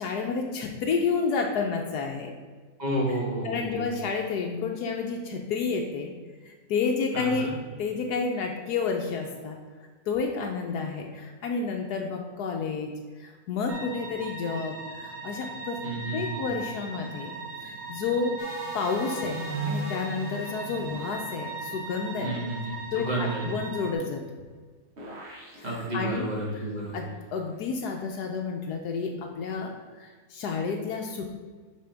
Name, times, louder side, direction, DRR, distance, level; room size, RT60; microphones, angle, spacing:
voice 1, 0.0-2.3 3.4-6.1 6.4-7.5 7.8-9.6 10.1-12.9 13.2-15.8 16.1-17.4 17.6-18.4 18.7-22.3 22.9-24.2 25.6-25.7 25.9-26.3 26.9-31.4, left 5 dB, 75° left, 2 dB, 1.2 m, -30 dB
voice 2, 2.8-3.8 7.1-7.5 15.8-16.5 22.2-23.5 25.6-27.0, right 1 dB, 25° right, -4 dB, 1.8 m, -31 dB
sound 1, 13.7-23.9, right 3 dB, 75° right, 1.7 m, -39 dB
sound 2, 18.4-22.2 25.0-26.5, right 2 dB, 45° right, 1.6 m, -37 dB
5.6 x 5.2 x 5.1 m, 1.4 s
omnidirectional pair, 1.8 m